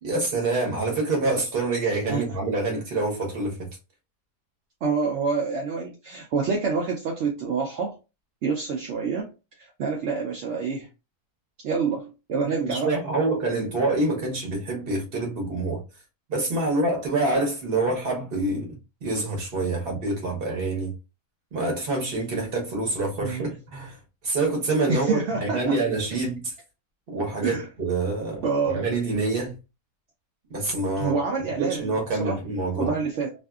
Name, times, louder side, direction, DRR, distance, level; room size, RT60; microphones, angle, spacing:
voice 1, 0.0-3.7 12.4-15.8 16.3-20.9 21.5-24.0 24.2-26.5 27.1-29.6 30.5-31.2 31.6-32.9, right 2 dB, 45° right, 1.0 m, -26 dB
voice 2, 4.8-8.0 8.4-9.3 9.6-10.9 11.6-12.9 23.2-23.5 24.9-25.8 27.4-27.7 28.4-28.9 31.0-32.4 32.8-33.3, right 5 dB, 65° right, 0.7 m, -27 dB
2.5 x 2.5 x 2.3 m
omnidirectional pair, 1.6 m